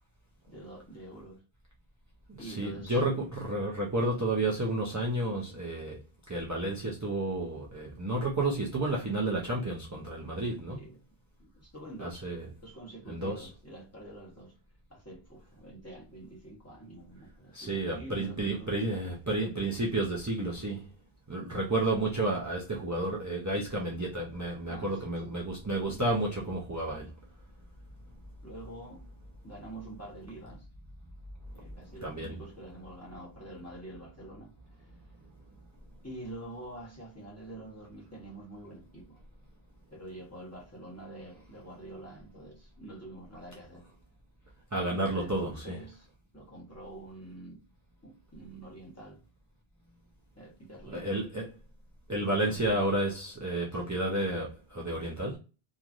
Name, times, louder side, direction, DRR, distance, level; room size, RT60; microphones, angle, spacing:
voice 1, 0.5-1.4 2.4-3.0 10.7-11.0 11.4-12.3 12.6-14.6 14.9-19.1 24.7-25.4 25.9-26.1 28.4-29.0 29.4-30.7 31.5-35.0 36.0-39.2 39.9-43.8 44.9-46.1 46.3-47.6 48.0-49.2 50.4-51.2 52.2-52.8 53.8-54.0, right 1 dB, 15° left, 1.0 m, -46 dB
voice 2, 2.4-6.0 6.3-10.8 12.0-12.5 13.1-13.5 17.5-20.9 21.3-27.1 32.0-32.4 44.7-45.8 50.9-51.5 52.1-55.4, right 2 dB, 25° right, 0.4 m, -31 dB
3.0 x 2.4 x 2.4 m
omnidirectional pair, 1.1 m